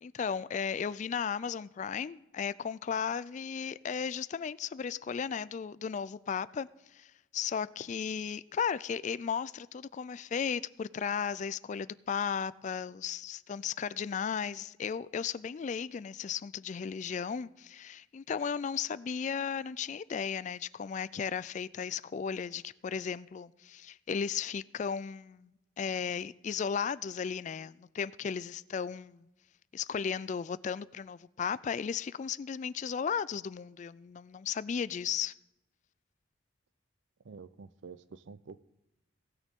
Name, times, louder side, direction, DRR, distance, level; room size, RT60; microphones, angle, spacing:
voice 1, 0.0-25.5 25.8-29.3 29.7-35.3, left 7 dB, 40° left, 0.3 m, -35 dB
voice 2, 37.2-38.6, right 5 dB, 75° right, 0.5 m, -48 dB
18.5 x 6.6 x 3.6 m
head